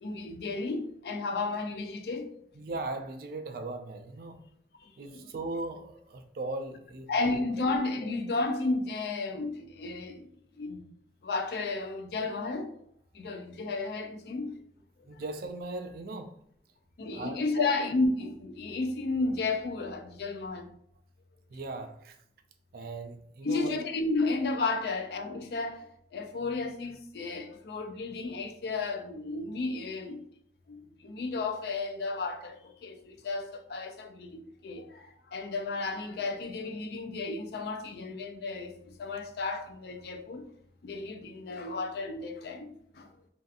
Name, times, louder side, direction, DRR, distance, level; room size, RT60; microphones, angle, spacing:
voice 1, 0.0-2.3 4.8-5.2 7.1-10.3 10.5-10.8 11.2-12.7 13.1-14.5 17.0-20.7 23.4-30.2 30.7-38.7 39.0-40.5 40.8-43.1, left 3 dB, 60° left, 0.3 m, -33 dB
voice 2, 2.5-4.4 5.0-7.4 15.0-16.4 17.1-17.7 21.5-22.2 22.7-23.8 24.2-24.3, right 2 dB, 50° right, 0.3 m, -38 dB
2.5 x 2.3 x 2.4 m
head